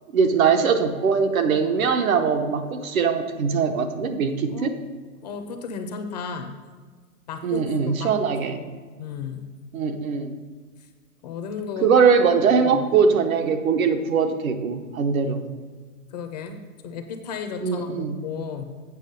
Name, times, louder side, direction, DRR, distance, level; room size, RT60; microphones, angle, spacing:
voice 1, 0.1-4.8 7.4-8.6 9.7-10.4 11.8-15.4 17.6-18.2, right 5 dB, 75° right, 6 dB, 1.1 m, -21 dB
voice 2, 5.2-6.5 7.3-8.1 8.5-8.7 9.0-9.5 11.2-11.9 12.5-13.0 16.1-16.6 16.8-18.6, left 6 dB, 30° left, 7 dB, 0.5 m, -34 dB
8.3 x 6.0 x 5.3 m, 1.5 s
hypercardioid pair, 150°, 43 cm